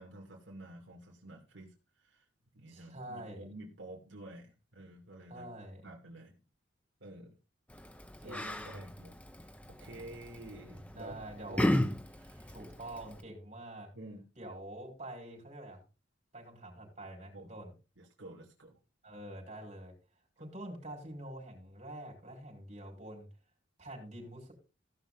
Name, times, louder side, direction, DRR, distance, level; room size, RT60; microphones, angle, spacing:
voice 1, 0.0-2.2 2.5-5.5 5.8-6.3 7.0-7.3 8.2-11.1 11.5-12.6 13.9-14.2 17.3-17.5 18.0-18.8, right 1 dB, 80° right, -1 dB, 2.6 m, -50 dB
voice 2, 2.7-3.5 5.3-5.9 8.2-8.9 10.9-11.7 12.5-13.9 14.4-15.8 16.3-17.7 19.0-19.9 20.4-23.3 23.8-24.5, right 1 dB, 35° right, 0 dB, 5.2 m, -46 dB
Yell, 7.7-13.2, left 1 dB, 5° left, 0.7 m, -36 dB
15.5 x 6.0 x 4.0 m, 0.31 s
head